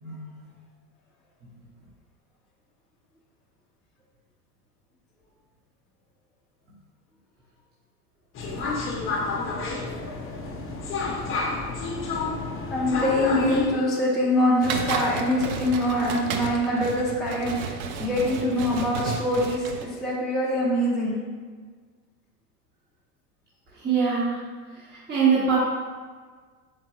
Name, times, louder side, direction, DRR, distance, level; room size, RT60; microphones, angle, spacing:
sound 1, 8.3-13.7, left 3 dB, 25° left, 0.8 m, -30 dB
voice 1, 8.9-9.4 12.2-21.2, left 1 dB, ahead, -6 dB, 0.5 m, -24 dB
sound 2, 14.6-19.8, right 6 dB, 60° right, 0.6 m, -32 dB
voice 2, 23.7-24.4 24.7-25.6, right 6 dB, 20° right, -9 dB, 1.3 m, -23 dB
4.6 x 3.6 x 3.0 m, 1.5 s
hypercardioid pair, 95°, 48 cm